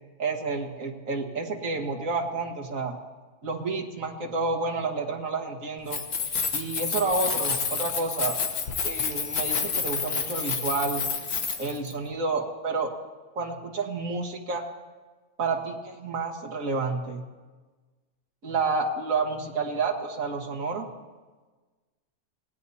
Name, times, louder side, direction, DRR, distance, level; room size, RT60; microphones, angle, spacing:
voice 1, 0.2-3.0 3.4-6.0 6.5-8.4 8.8-11.1 11.6-12.9 13.4-14.7 15.4-17.2 18.4-20.9, right 3 dB, 60° right, 0 dB, 2.0 m, -29 dB
Keys jangling, 5.8-11.9, left 5 dB, 80° left, 1.7 m, -29 dB
26.5 x 18.5 x 2.8 m, 1.3 s
omnidirectional pair, 1.6 m